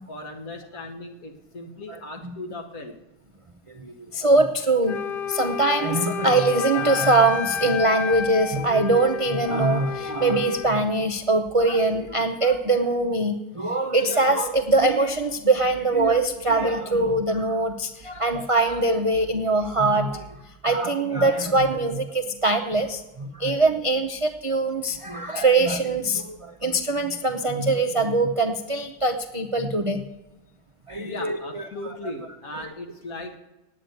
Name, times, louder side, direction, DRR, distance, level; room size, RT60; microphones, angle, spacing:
voice 1, 0.1-3.0 31.1-33.4, left 2 dB, 65° left, 3 dB, 2.0 m, -37 dB
voice 2, 3.8-5.0 5.3-20.2 20.6-30.0 30.9-31.6, right 2 dB, 45° right, 5 dB, 0.4 m, -22 dB
Wind instrument woodwind instrument, 4.8-10.7, left 8 dB, 85° left, 0.5 m, -31 dB
9.1 x 8.6 x 9.4 m, 1.0 s
omnidirectional pair, 1.6 m